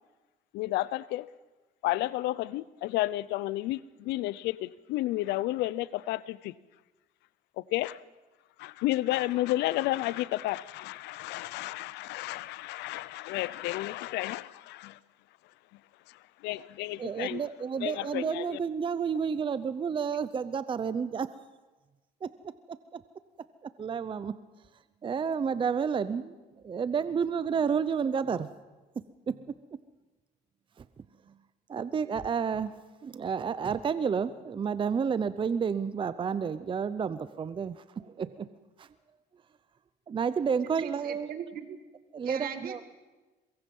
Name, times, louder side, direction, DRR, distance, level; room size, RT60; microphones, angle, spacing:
voice 1, 0.5-1.3 1.8-6.5 7.6-8.0 8.6-15.0 15.7-15.8 16.1-17.5 17.8-18.6, left 17 dB, 85° left, 0.6 m, -32 dB
voice 2, 17.0-21.3 22.2-23.0 23.6-24.3 25.0-26.4 26.6-28.5 29.3-29.4 31.7-32.7 33.0-38.5 38.8-38.9 40.1-41.3 42.1-42.8, right 6 dB, 30° right, 0.7 m, -30 dB
voice 3, 40.6-41.8 42.2-42.9, right 8 dB, 60° right, 2.1 m, -40 dB
23.0 x 22.5 x 5.5 m
cardioid pair, 110°, 17 cm